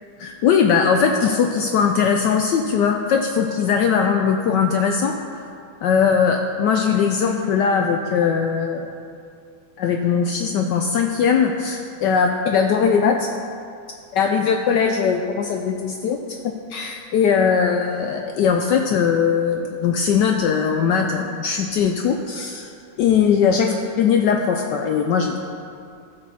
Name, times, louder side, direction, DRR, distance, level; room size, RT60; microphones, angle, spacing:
voice 1, 0.2-5.2 5.8-8.9 9.8-13.3 14.1-22.7 23.0-25.4, left 6 dB, 80° left, 4 dB, 0.9 m, -20 dB
15.0 x 5.3 x 4.2 m, 2.4 s
omnidirectional pair, 2.4 m